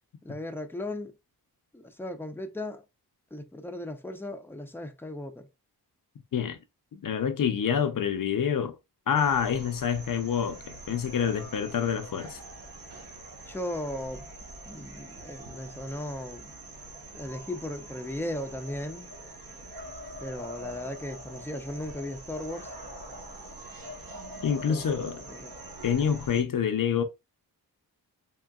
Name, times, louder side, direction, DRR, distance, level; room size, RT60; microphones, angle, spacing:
voice 1, 0.2-1.1 1.7-2.8 3.3-5.5 13.5-14.3 14.7-16.5 17.1-19.1 20.2-22.7 24.5-25.5, left 1 dB, 5° left, 0.5 m, -37 dB
voice 2, 6.9-8.8 9.1-12.4 24.4-25.2 25.8-27.0, left 8 dB, 55° left, 0.6 m, -27 dB
sound 1, 9.2-26.4, right 1 dB, 60° right, 1.3 m, -44 dB
3.7 x 3.7 x 2.3 m
wide cardioid pair, 130°, 40 cm